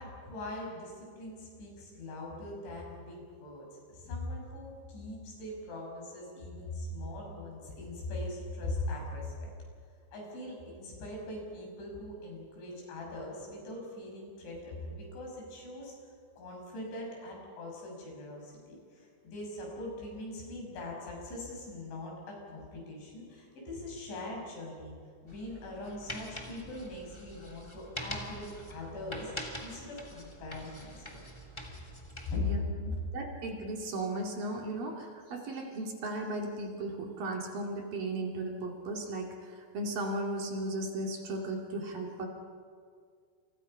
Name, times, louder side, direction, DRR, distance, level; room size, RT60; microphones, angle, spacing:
voice 1, 0.0-9.5 10.1-15.9 16.4-24.9 25.2-29.3 29.6-31.2 32.3-32.4, left 2 dB, 80° left, -1 dB, 8.9 m, -41 dB
sound 1, 25.3-32.4, equal, 10° left, 1.2 m, -44 dB
voice 2, 32.4-42.3, right 2 dB, 55° right, 1 dB, 3.7 m, -36 dB
29.5 x 28.5 x 5.6 m, 2.1 s
omnidirectional pair, 5.2 m